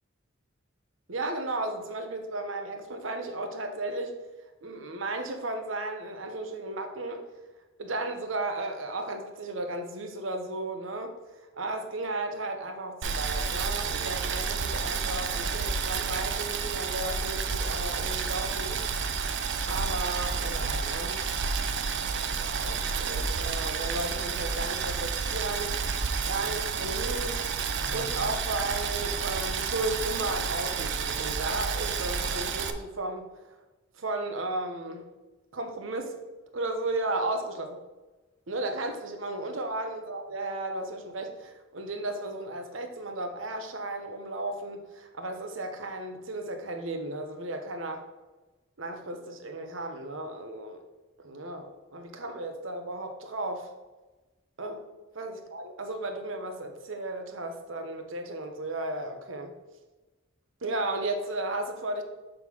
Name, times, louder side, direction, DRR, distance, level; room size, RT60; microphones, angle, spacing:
voice 1, 1.1-4.2 4.6-7.3 7.8-11.1 11.5-18.9 19.7-21.3 22.1-25.8 26.2-27.5 27.9-33.3 34.0-35.0 35.5-36.2 36.5-37.8 38.5-48.0 48.8-50.8 51.2-53.7 54.6-59.5 60.6-62.0, right 2 dB, 75° right, 5 dB, 1.0 m, -34 dB
Boiling, 13.0-32.7, right 5 dB, 60° right, 0.5 m, -30 dB
6.6 x 3.8 x 6.0 m, 1.1 s
head